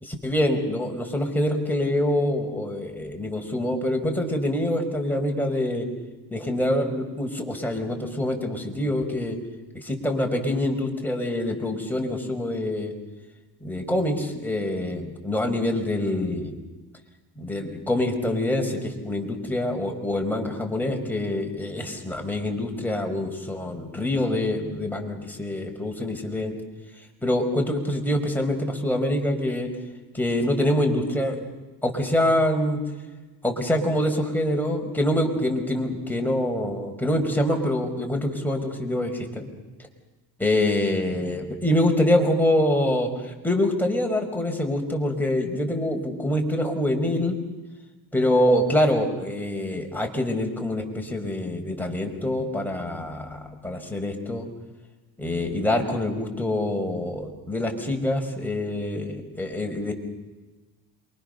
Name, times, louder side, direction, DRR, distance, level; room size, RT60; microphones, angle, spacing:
voice 1, 0.0-5.9 6.3-9.4 9.7-12.9 13.6-16.6 17.4-26.5 27.2-29.7 30.1-31.4 31.8-32.8 33.4-39.5 40.4-47.4 48.1-54.5 55.2-59.9, left 1 dB, 5° left, 2 dB, 5.5 m, -25 dB
28.0 x 24.0 x 6.9 m, 1.2 s
cardioid pair, 90°, 39 cm